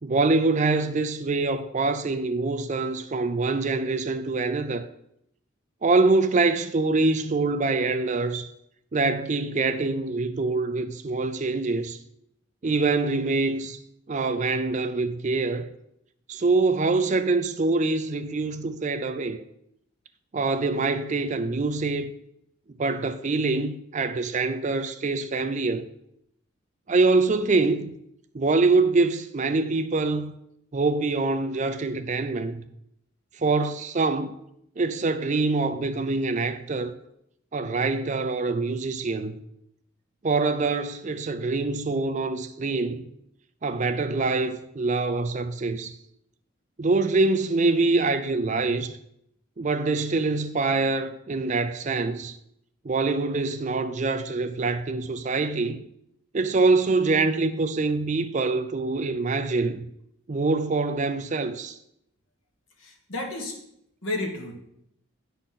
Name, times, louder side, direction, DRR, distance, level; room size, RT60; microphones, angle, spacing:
voice 1, 0.0-4.9 5.8-8.5 8.9-12.0 12.6-13.8 14.1-15.7 16.3-19.4 20.3-22.1 22.8-25.8 26.9-27.9 28.3-30.3 30.7-32.7 33.4-34.3 34.8-36.9 37.5-39.4 40.2-43.0 43.6-45.9 46.8-48.9 49.6-52.4 52.8-55.8 56.3-59.9 60.3-61.8, right 3 dB, 35° right, 0.4 m, -24 dB
voice 2, 62.8-63.6 64.0-64.5, left 2 dB, 75° left, 1.9 m, -31 dB
10.0 x 4.2 x 5.7 m
head